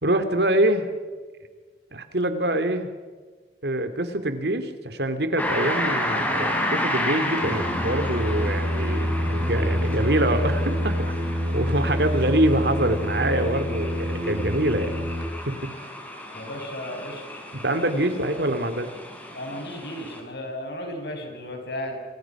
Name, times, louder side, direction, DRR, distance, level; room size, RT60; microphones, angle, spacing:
voice 1, 0.0-0.9 1.9-2.9 3.6-15.1 15.5-15.6 17.6-18.9, right 1 dB, 70° right, 9 dB, 2.7 m, -25 dB
sound 1, 5.4-20.2, left 1 dB, 10° left, 5.1 m, -32 dB
Singing, 7.4-15.3, equal, 45° right, 4.5 m, -27 dB
voice 2, 16.3-17.2 19.3-22.0, left 1 dB, 65° left, 3 dB, 7.0 m, -34 dB
27.0 x 27.0 x 6.1 m, 1.4 s
head